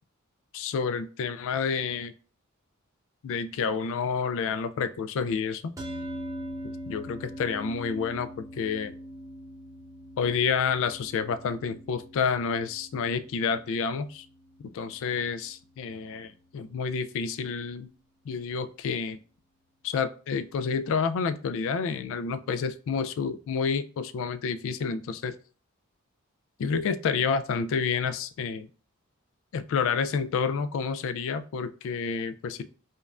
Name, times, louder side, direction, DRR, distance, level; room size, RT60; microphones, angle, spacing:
voice 1, 0.5-2.1 3.2-5.7 6.9-8.9 10.2-14.3 14.6-17.9 18.3-19.2 19.8-25.3 26.6-28.7 29.5-32.6, left 5 dB, 65° left, 11 dB, 0.3 m, -29 dB
sound 1, 5.8-16.2, equal, 15° right, 0.7 m, -43 dB
5.1 x 2.3 x 2.4 m, 0.39 s
head